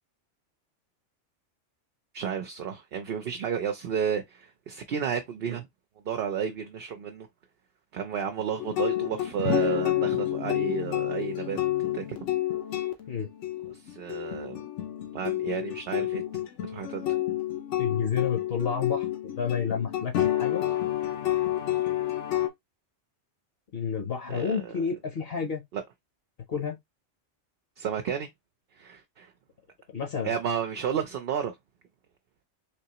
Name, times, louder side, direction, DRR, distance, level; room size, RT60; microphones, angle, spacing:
voice 1, 2.1-5.7 6.0-7.3 7.9-11.6 11.9-12.2 13.7-14.6 15.1-16.2 16.7-17.1 24.3-24.8 25.7-25.8 27.8-28.3 28.8-29.3 30.2-31.6, right 8 dB, 60° right, 0.7 m, -32 dB
sound 1, 8.6-22.5, left 13 dB, 80° left, 1.1 m, -29 dB
voice 2, 17.8-20.6 23.7-25.6 26.5-26.8 29.9-30.3, left 6 dB, 55° left, 1.0 m, -30 dB
3.6 x 2.9 x 2.8 m
omnidirectional pair, 1.2 m